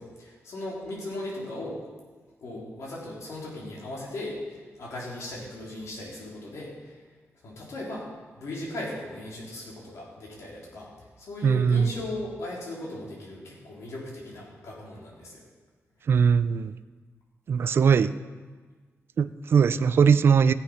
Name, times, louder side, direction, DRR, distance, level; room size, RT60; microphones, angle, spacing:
voice 1, 0.0-1.8 2.4-7.0 7.4-8.1 8.4-10.9 11.2-15.4, left 1 dB, 75° left, -4 dB, 3.6 m, -37 dB
voice 2, 11.4-11.9 16.1-16.7 17.5-18.1 19.2-20.5, right 6 dB, 50° right, 14 dB, 0.4 m, -20 dB
14.5 x 8.4 x 5.7 m, 1.4 s
wide cardioid pair, 175°, 5 cm